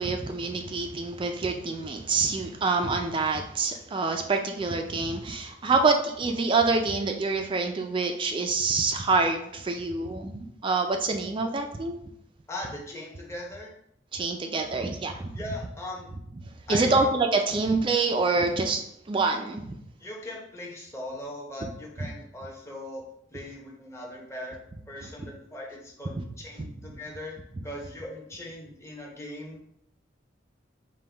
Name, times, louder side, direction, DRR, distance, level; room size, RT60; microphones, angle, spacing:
voice 1, 0.0-12.0 14.1-15.3 16.7-19.7 26.2-26.3 26.6-26.7, right 3 dB, 30° right, 4 dB, 0.4 m, -26 dB
voice 2, 12.5-13.7 15.3-16.1 16.7-17.0 20.0-23.0 23.3-24.6 24.9-27.4 27.6-29.7, left 1 dB, 15° left, -2 dB, 0.9 m, -39 dB
5.3 x 2.2 x 3.3 m, 0.73 s
head